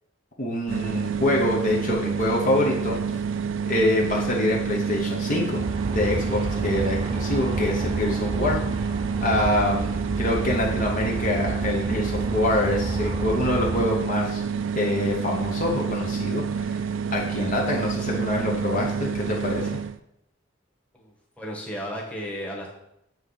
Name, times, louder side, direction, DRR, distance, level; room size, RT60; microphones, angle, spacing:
voice 1, 0.4-3.0 3.7-5.6 5.9-8.8 9.2-14.4 14.7-16.8 17.1-19.7, left 1 dB, 40° left, -2 dB, 1.0 m, -25 dB
Vending Machines - Coffee Machine Hum, 0.7-20.0, right 6 dB, 80° right, 0.4 m, -28 dB
Aircraft, 5.6-13.9, right 2 dB, 25° right, 0.5 m, -31 dB
voice 2, 20.9-22.7, equal, 5° left, -2 dB, 1.3 m, -34 dB
7.4 x 3.7 x 5.6 m, 0.80 s
head